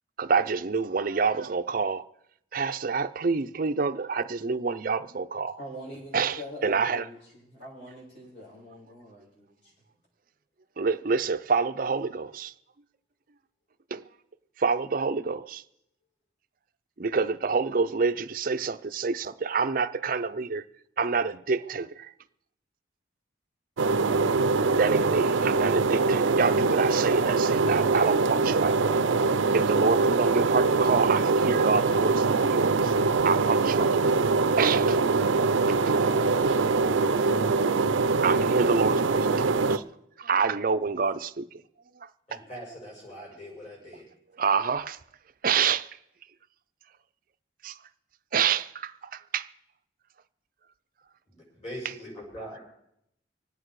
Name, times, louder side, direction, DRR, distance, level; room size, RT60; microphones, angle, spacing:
voice 1, 0.2-2.0 2.5-5.6 6.1-7.1 10.8-12.5 13.9-14.0 14.6-15.6 17.0-20.6 21.0-22.1 24.7-28.9 29.5-32.9 33.2-34.1 34.6-35.0 38.2-39.8 40.2-41.5 42.3-42.4 44.4-45.0 45.4-45.9 47.6-47.7 48.3-48.9 49.3-49.5, right 5 dB, 45° right, 0.5 m, -27 dB
voice 2, 5.6-9.7, equal, 75° left, 7.5 m, -44 dB
sound 1, 23.8-39.8, right 4 dB, 90° right, 0.6 m, -23 dB
voice 3, 42.3-44.1 51.3-52.6, equal, 35° left, 6.5 m, -42 dB
25.0 x 8.8 x 4.7 m
head